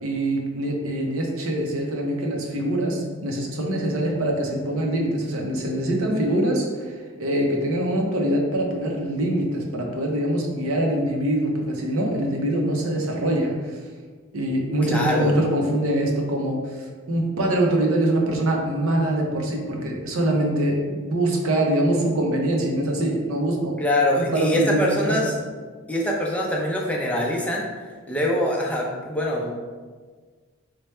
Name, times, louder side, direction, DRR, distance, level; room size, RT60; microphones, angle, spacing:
voice 1, 0.0-13.8 14.3-16.6 17.1-23.7 24.1-25.1, right 1 dB, 90° right, 1 dB, 0.7 m, -24 dB
voice 2, 14.8-15.4 23.8-25.4 25.9-27.7 28.1-29.6, left 1 dB, 5° left, -3 dB, 0.5 m, -23 dB
3.2 x 2.2 x 4.2 m, 1.5 s
head